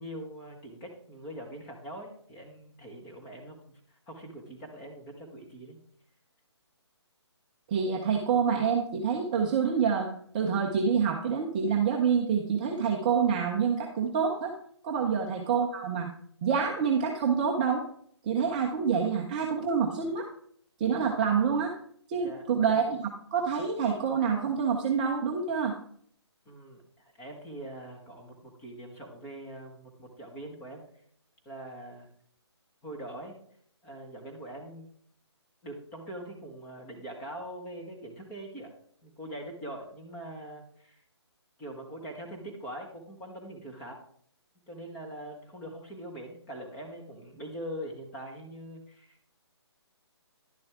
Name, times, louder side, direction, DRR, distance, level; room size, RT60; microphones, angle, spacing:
voice 1, 0.0-5.8 15.0-15.2 22.2-22.5 26.4-30.8 31.4-32.1 32.8-33.3 33.8-34.9 35.6-38.7 39.0-41.0 41.6-44.0 44.7-49.2, right 1 dB, 15° left, 0 dB, 1.4 m, -43 dB
voice 2, 7.7-14.6 14.8-16.1 16.4-17.8 18.2-20.3 20.8-21.8 22.1-25.8, right 6 dB, 15° right, 1 dB, 0.6 m, -27 dB
11.0 x 6.8 x 3.6 m, 0.62 s
hypercardioid pair, 160°, 15 cm